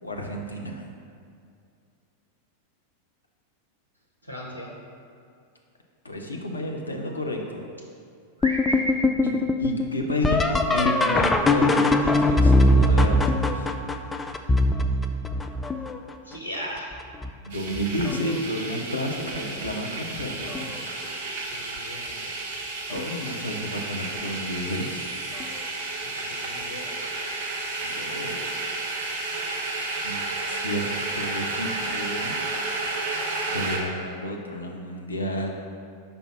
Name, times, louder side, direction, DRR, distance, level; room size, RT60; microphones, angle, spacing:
voice 1, 0.0-0.8 6.0-7.6 9.2-9.3 9.6-13.7 17.4-20.9 22.9-25.1 27.8-28.4 30.0-30.9 31.1-32.3 33.5-35.5, left 1 dB, 80° left, 1 dB, 0.6 m, -31 dB
voice 2, 4.2-4.7 8.4-8.9 16.2-16.9 21.5-22.3 26.0-26.9, right 1 dB, 85° right, -1 dB, 0.8 m, -34 dB
sound 1, 8.4-16.1 16.8-17.3 17.7-18.4 19.7-19.8 20.5-20.8 23.0-23.1 25.4-25.5, left 1 dB, 10° left, 0.4 m, -22 dB
sound 2, 17.5-33.8, right 2 dB, 50° right, 1.0 m, -32 dB
5.4 x 4.4 x 5.8 m, 2.4 s
figure-of-eight pair, 90°, 0 cm